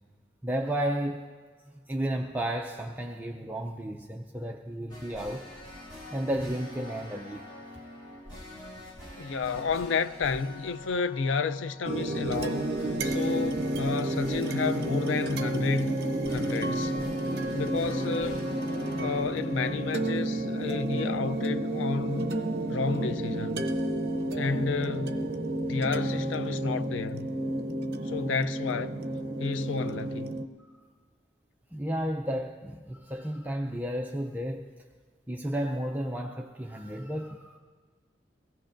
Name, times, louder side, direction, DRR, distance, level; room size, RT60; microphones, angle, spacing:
voice 1, 0.4-1.3 1.9-5.5 6.1-7.5 30.6-30.8 31.7-34.7 35.3-37.6, right 1 dB, 10° right, 0.4 m, -32 dB
sound 1, 4.9-20.1, left 1 dB, 20° left, 4.7 m, -46 dB
voice 2, 9.2-16.0 16.3-17.0 17.5-18.5 19.0-22.3 22.7-23.7 24.3-25.3 25.6-27.3 28.0-29.0 29.4-30.3, left 5 dB, 90° left, 0.4 m, -31 dB
sound 2, 11.8-30.4, right 1 dB, 55° right, 0.7 m, -31 dB
22.5 x 17.0 x 2.6 m
head